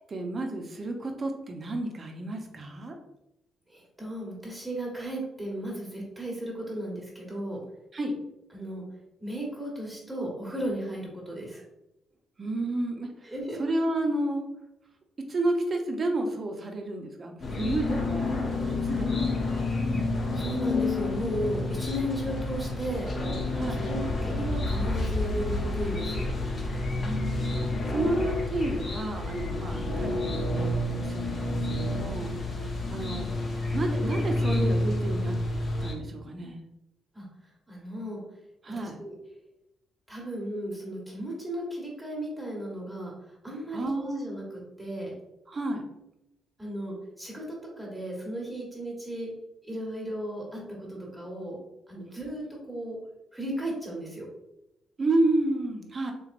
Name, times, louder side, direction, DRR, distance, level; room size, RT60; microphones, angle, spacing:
voice 1, 0.1-3.0 7.9-8.1 12.4-13.3 13.6-14.5 15.2-19.4 23.5-23.8 27.0-33.3 33.7-35.3 35.8-36.7 38.6-39.0 43.7-44.2 45.5-45.8 55.0-56.1, right 2 dB, 35° right, 3 dB, 0.7 m, -31 dB
voice 2, 3.7-7.6 8.5-8.8 9.2-11.6 13.3-13.6 19.9-20.0 20.3-23.1 23.7-26.3 29.7-30.0 33.0-33.3 37.1-37.3 37.7-38.2 38.8-39.1 40.1-43.1 43.4-45.1 46.6-47.4 47.8-49.3 49.6-51.6 51.9-53.0 53.3-54.3, right 1 dB, 10° right, -3 dB, 1.2 m, -35 dB
sound 1, 17.4-35.9, left 2 dB, 45° left, 0.7 m, -29 dB
3.7 x 2.9 x 2.5 m, 0.87 s
cardioid pair, 90°, 0 cm